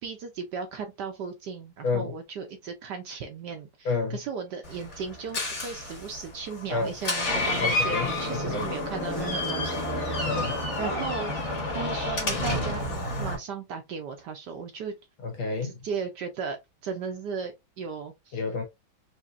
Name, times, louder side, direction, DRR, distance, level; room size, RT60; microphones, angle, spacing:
voice 1, 0.0-10.5 10.8-11.3 11.7-14.9 15.6-16.6 16.8-18.4, right 5 dB, 65° right, 1.1 m, -36 dB
voice 2, 3.9-4.2 6.7-6.9 7.6-8.7 10.2-10.6 15.2-15.8 18.3-18.6, left 4 dB, 75° left, 2.1 m, -29 dB
Door, 4.6-13.4, left 2 dB, 35° left, 1.6 m, -30 dB
4.9 x 2.7 x 2.6 m
omnidirectional pair, 2.3 m